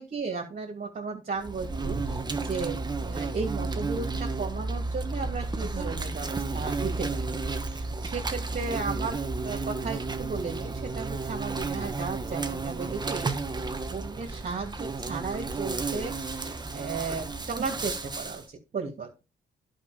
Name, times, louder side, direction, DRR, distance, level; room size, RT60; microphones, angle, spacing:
voice 1, 0.0-7.3 7.6-13.3 13.9-19.2, right 4 dB, 45° right, 0 dB, 2.9 m, -35 dB
Insect, 1.4-18.4, right 3 dB, 20° right, 1.4 m, -32 dB
11.0 x 5.8 x 5.2 m, 0.28 s
cardioid pair, 90°, 20 cm